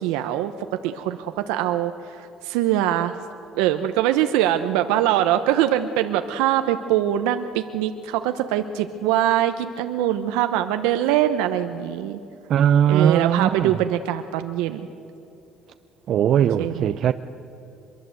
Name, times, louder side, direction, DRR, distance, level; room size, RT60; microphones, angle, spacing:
voice 1, 0.0-3.1 3.5-12.2 12.9-14.9 16.6-16.9, right 12 dB, 85° right, 0.8 m, -23 dB
voice 2, 12.5-13.7 16.1-17.1, right 9 dB, 60° right, 0.6 m, -19 dB
24.0 x 23.0 x 7.9 m
supercardioid pair, 90°, 0 cm